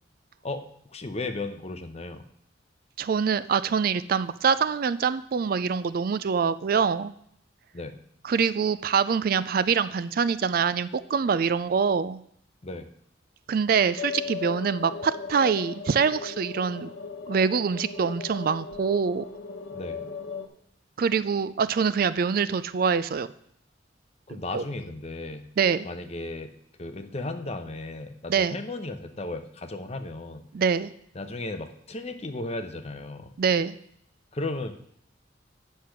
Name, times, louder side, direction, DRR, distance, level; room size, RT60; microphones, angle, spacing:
voice 1, 0.9-2.2 7.7-8.0 12.6-12.9 19.7-20.0 24.3-25.4 25.8-26.5 26.8-30.4 31.1-33.3 34.3-34.8, left 2 dB, 35° left, 8 dB, 0.8 m, -35 dB
voice 2, 3.0-7.1 8.2-12.2 13.5-16.9 17.3-19.2 21.0-23.3 24.5-24.6 25.6-25.9 28.3-28.6 30.5-30.9 33.4-33.7, right 6 dB, 50° right, 16 dB, 0.4 m, -25 dB
sound 1, 14.0-20.5, left 5 dB, 75° left, 1.1 m, -37 dB
8.5 x 6.5 x 5.8 m, 0.67 s
head